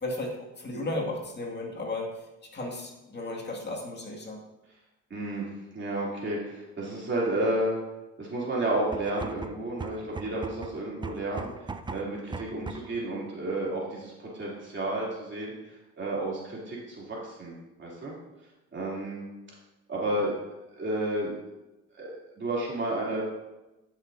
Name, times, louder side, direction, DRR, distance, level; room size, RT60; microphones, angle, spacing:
voice 1, 0.0-2.3 2.5-4.4, left 2 dB, 35° left, -1 dB, 2.0 m, -34 dB
voice 2, 5.1-7.8 8.2-11.5 11.9-18.1 18.7-19.2 19.9-20.3 20.8-21.3 21.9-23.2, right 1 dB, 40° right, -5 dB, 2.9 m, -31 dB
sound 1, 8.9-13.0, right 4 dB, 15° right, 0.4 m, -39 dB
12.5 x 6.4 x 2.6 m, 1.0 s
cardioid pair, 90°, 30 cm